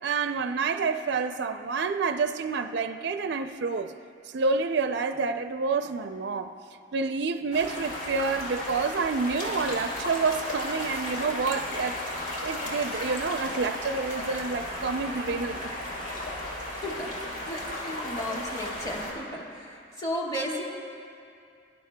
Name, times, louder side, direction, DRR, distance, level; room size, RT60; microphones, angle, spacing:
voice 1, 0.0-3.9 4.3-6.5 6.9-12.0 12.4-15.7, right 4 dB, 60° right, 8 dB, 0.4 m, -28 dB
sound 1, 7.5-19.1, left 1 dB, 45° left, 2.9 m, -34 dB
voice 2, 16.7-20.6, equal, 20° left, -3 dB, 1.8 m, -34 dB
23.0 x 12.0 x 2.2 m, 2.4 s
head